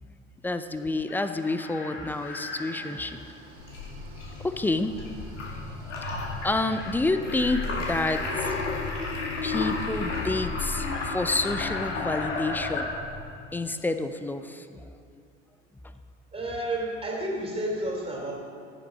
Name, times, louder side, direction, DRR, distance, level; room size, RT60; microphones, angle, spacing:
voice 1, 0.4-3.2 4.4-5.3 5.5-5.7 6.1-8.5 9.4-12.9 13.5-14.9, left 2 dB, 5° left, 10 dB, 0.4 m, -29 dB
Chicken rooster, 0.8-2.9 6.7-8.5 10.9-12.7, left 2 dB, 30° left, 1.7 m, -38 dB
sound 1, 2.1-7.1, right 2 dB, 55° right, 2.0 m, -51 dB
sound 2, 3.6-13.3, left 3 dB, 70° left, 2.0 m, -32 dB
voice 2, 16.3-18.3, right 1 dB, 15° right, -2 dB, 3.0 m, -31 dB
15.0 x 6.8 x 5.2 m, 2.5 s
figure-of-eight pair, 70°, 37 cm